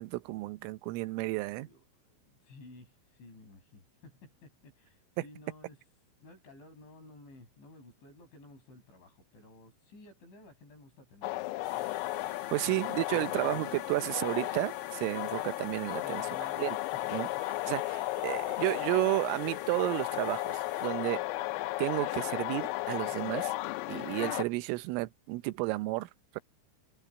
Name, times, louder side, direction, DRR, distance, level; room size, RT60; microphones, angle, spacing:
voice 1, 0.0-1.7 12.5-16.2 16.6-16.8 17.1-17.3 17.7-21.2 21.8-23.5 23.9-26.4, right 21 dB, 85° right, 3.4 m, -32 dB
voice 2, 1.2-5.8 6.2-11.5 12.6-13.6 16.0-17.7, left 2 dB, 65° left, 10.0 m, -55 dB
sound 1, 11.2-24.4, left 18 dB, 90° left, 3.4 m, -35 dB
sound 2, 11.6-20.9, right 5 dB, 60° right, 7.1 m, -56 dB
omnidirectional pair, 5.8 m